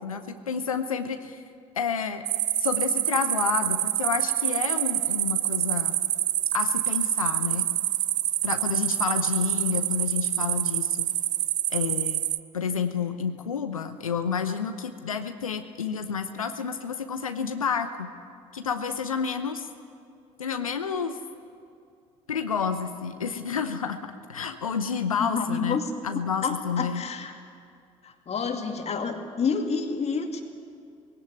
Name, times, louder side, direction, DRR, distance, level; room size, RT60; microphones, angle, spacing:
voice 1, 0.0-1.4 1.8-2.2 2.6-6.0 6.5-7.7 8.4-11.1 11.7-12.2 12.5-18.1 18.5-19.7 20.4-21.2 22.3-25.8 26.0-27.0, left 6 dB, 85° left, 9 dB, 0.7 m, -29 dB
sound 1, 2.3-12.4, right 12 dB, 45° right, 0.6 m, -26 dB
voice 2, 25.1-25.8 26.4-27.3 28.0-30.4, left 5 dB, 40° left, 5 dB, 2.3 m, -29 dB
19.0 x 17.0 x 9.4 m, 2.4 s
figure-of-eight pair, 50°, 17 cm